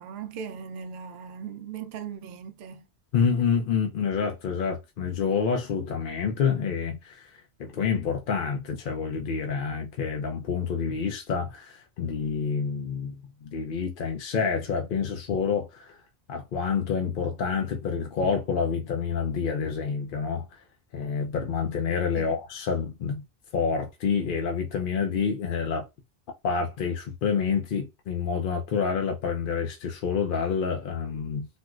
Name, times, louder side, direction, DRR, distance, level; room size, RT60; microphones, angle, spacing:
voice 1, 0.0-2.9 22.1-22.3, right 7 dB, 70° right, 0.8 m, -38 dB
voice 2, 3.1-16.0 16.3-20.6 20.9-23.2 23.5-25.9 26.4-31.5, left 6 dB, 60° left, 0.7 m, -28 dB
4.2 x 2.1 x 2.3 m
omnidirectional pair, 1.1 m